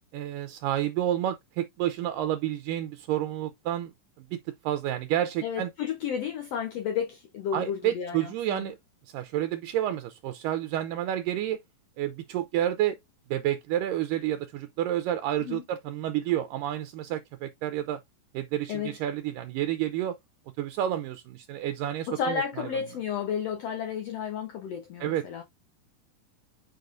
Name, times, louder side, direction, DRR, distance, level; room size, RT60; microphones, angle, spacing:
voice 1, 0.0-3.9 4.2-5.7 7.5-8.8 9.1-11.6 12.0-13.0 13.3-18.0 18.3-20.2 20.6-22.7 25.0-25.3, right 12 dB, 80° right, 2.2 m, -30 dB
voice 2, 5.4-8.7 15.4-15.6 18.7-19.0 22.1-25.4, left 7 dB, 90° left, 1.4 m, -32 dB
7.8 x 5.4 x 2.5 m
omnidirectional pair, 4.1 m